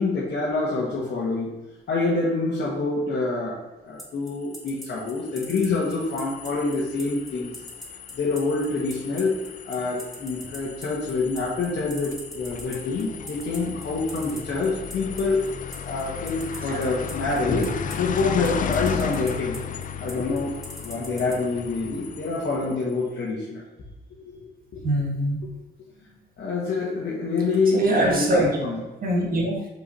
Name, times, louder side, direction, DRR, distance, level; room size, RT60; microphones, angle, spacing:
voice 1, 0.0-1.5 1.9-3.6 3.9-7.5 8.1-9.4 9.6-15.4 15.8-17.7 17.9-19.6 20.0-23.6 24.2-24.8 26.4-28.8, left 3 dB, 55° left, -6 dB, 1.4 m, -26 dB
sound 1, 4.0-21.4, equal, ahead, 1.4 m, -41 dB
sound 2, 4.4-22.9, left 7 dB, 40° left, 0.4 m, -35 dB
voice 2, 24.8-25.4 27.7-28.5 29.0-29.7, right 1 dB, 45° right, -1 dB, 1.8 m, -23 dB
5.1 x 4.5 x 4.2 m, 1.1 s
cardioid pair, 90°, 20 cm